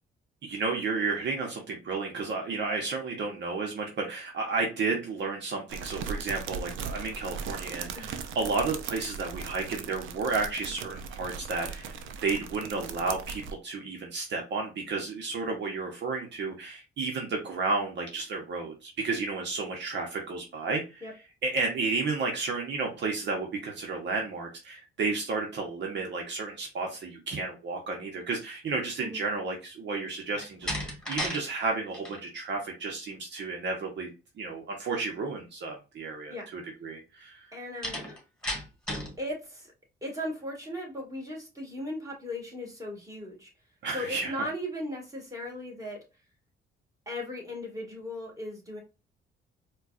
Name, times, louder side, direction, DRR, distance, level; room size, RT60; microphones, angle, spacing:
voice 1, 0.4-12.0 12.2-21.0 21.4-34.1 34.4-37.4 43.8-44.3, right 4 dB, 65° right, 1 dB, 1.0 m, -32 dB
sound 1, 5.7-13.5, right 6 dB, 80° right, 0.5 m, -38 dB
Slam, 30.3-31.4 31.7-32.2 37.8-39.2, equal, 5° left, 1.9 m, -34 dB
voice 2, 37.5-38.0 39.2-39.7 40.0-43.5 43.9-46.0 47.1-48.8, left 1 dB, 15° right, -1 dB, 1.9 m, -37 dB
4.4 x 2.4 x 2.4 m, 0.29 s
cardioid pair, 90°, 20 cm